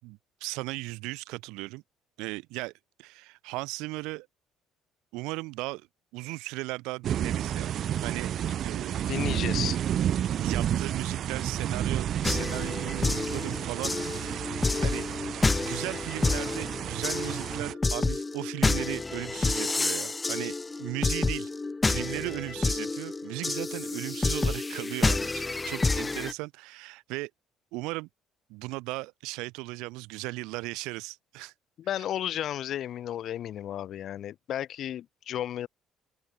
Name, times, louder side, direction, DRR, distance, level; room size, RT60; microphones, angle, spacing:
voice 1, 0.0-1.8 2.2-2.7 3.0-4.3 5.1-5.9 6.1-8.3 8.6-9.3 10.4-14.6 14.8-15.1 15.6-21.5 21.8-27.3 27.7-28.1 28.5-31.5, right 23 dB, 90° right, 7.0 m, -37 dB
sound 1, 7.0-17.7, right 10 dB, 60° right, 2.1 m, -31 dB
voice 2, 9.1-9.8 31.8-35.7, left 11 dB, 65° left, 3.1 m, -33 dB
sound 2, 12.2-26.3, left 3 dB, 20° left, 6.8 m, -29 dB
open air
cardioid pair, 90°, 0 cm